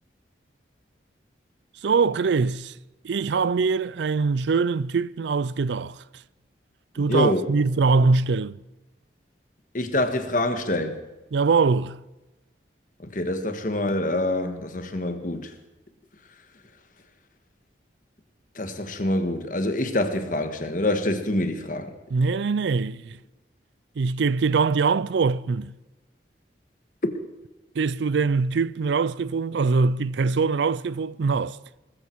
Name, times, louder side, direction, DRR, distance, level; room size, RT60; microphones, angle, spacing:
voice 1, 1.8-2.7 3.0-6.0 7.0-8.6 11.3-12.0 22.1-23.2 24.0-25.7 27.8-31.6, right 4 dB, 75° right, 0.4 m, -23 dB
voice 2, 7.1-7.4 9.7-11.0 13.0-15.5 18.5-21.9 27.0-27.1, left 1 dB, 45° left, 1.5 m, -26 dB
19.5 x 14.5 x 4.6 m
head